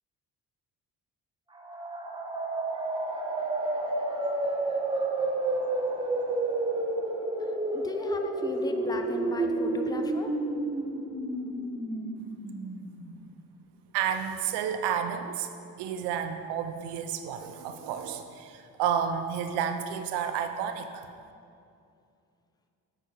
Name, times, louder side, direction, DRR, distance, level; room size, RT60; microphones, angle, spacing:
sound 1, 1.5-13.2, right 2 dB, 10° right, 1.3 m, -30 dB
voice 1, 7.7-10.3, left 2 dB, 10° left, 5 dB, 0.7 m, -36 dB
voice 2, 13.9-15.5 15.8-21.1, right 8 dB, 90° right, 7 dB, 0.7 m, -31 dB
8.3 x 6.1 x 4.3 m, 2.4 s
supercardioid pair, 75°, 38 cm